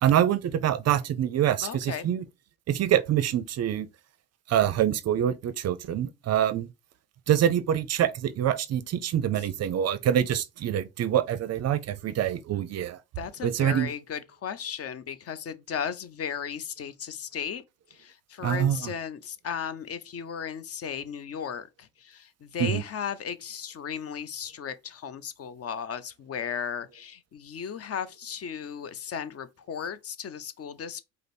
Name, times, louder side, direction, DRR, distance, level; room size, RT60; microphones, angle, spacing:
voice 1, 0.0-2.2 2.7-3.9 4.5-6.7 7.3-13.0 13.4-13.9 18.4-18.9 22.6-22.8, right 10 dB, 40° right, 0.5 m, -25 dB
voice 2, 1.6-2.1 13.2-17.6 17.9-31.0, left 7 dB, 35° left, 0.5 m, -35 dB
5.0 x 2.0 x 4.2 m
hypercardioid pair, 65°, 40 cm